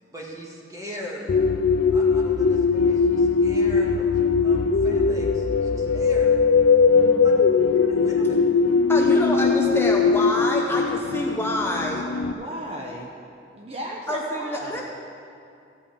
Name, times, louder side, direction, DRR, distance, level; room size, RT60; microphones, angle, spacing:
voice 1, 0.0-1.4 1.9-4.1 4.4-6.3 7.2-7.3 7.8-8.4, left 1 dB, 20° right, -3 dB, 2.0 m, -39 dB
sound 1, 1.3-12.3, left 5 dB, 70° left, 0.4 m, -20 dB
voice 2, 8.0-8.5 12.4-13.2 13.5-14.8, equal, 35° right, -1 dB, 1.0 m, -35 dB
voice 3, 8.9-12.1 14.1-14.8, left 1 dB, 15° left, -1 dB, 0.9 m, -27 dB
15.0 x 5.5 x 8.4 m, 2.5 s
head